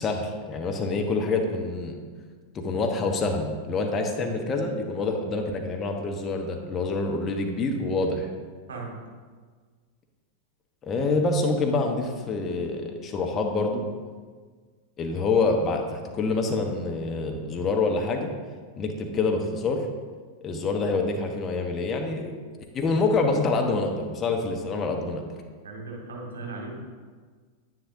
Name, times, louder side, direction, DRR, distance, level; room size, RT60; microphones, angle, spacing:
voice 1, 0.0-2.0 2.5-8.3 10.8-13.8 15.0-18.3 18.8-19.9 20.4-22.3 22.7-25.2, left 3 dB, 25° left, 2 dB, 1.1 m, -26 dB
voice 2, 25.6-26.7, right 3 dB, 65° right, 0 dB, 1.9 m, -37 dB
10.0 x 9.3 x 2.7 m, 1.5 s
figure-of-eight pair, 90°, 0 cm